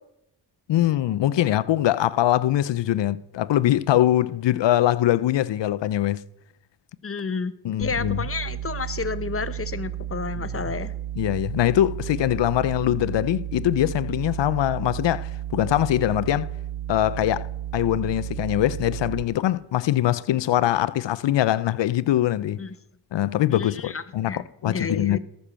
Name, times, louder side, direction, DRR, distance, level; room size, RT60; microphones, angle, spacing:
voice 1, 0.7-6.2 7.6-8.2 10.4-10.5 11.2-16.5 16.9-17.5 17.7-22.6 23.1-25.2, left 13 dB, 75° left, 0.7 m, -22 dB
voice 2, 7.0-7.5 7.8-10.9 22.6-22.7 23.5-25.2, left 5 dB, 30° left, 0.9 m, -31 dB
sound 1, 7.8-19.2, right 11 dB, 55° right, 0.8 m, -33 dB
17.0 x 6.9 x 7.4 m
cardioid pair, 95°, 43 cm